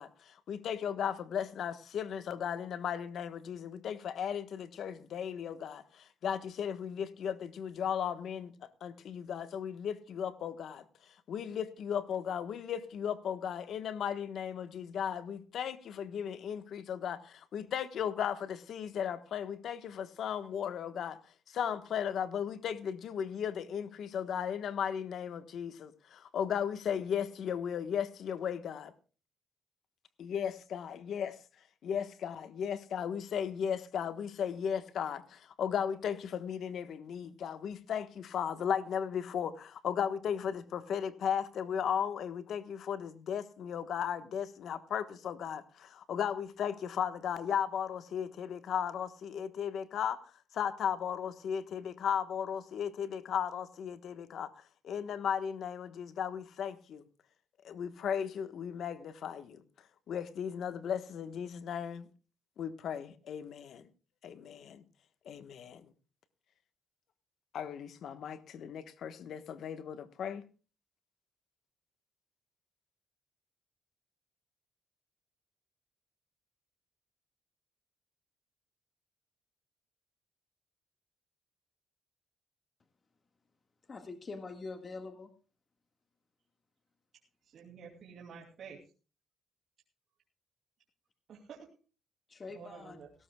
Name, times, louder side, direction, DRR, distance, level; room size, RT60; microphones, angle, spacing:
voice 1, 0.0-8.5 8.8-10.8 11.3-21.2 21.5-28.9 30.2-31.4 31.8-50.2 50.5-54.5 54.8-57.0 57.6-59.6 60.1-62.1 62.6-63.9 64.2-64.8 65.2-65.9 67.5-70.4, left 8 dB, 65° left, 1.2 m, -36 dB
voice 2, 83.9-85.3 92.3-93.0, left 3 dB, 35° left, 1.7 m, -44 dB
voice 3, 87.4-88.8 91.3-91.7 92.5-93.1, right 6 dB, 65° right, 2.7 m, -50 dB
18.0 x 17.0 x 2.3 m
cardioid pair, 90°, 0 cm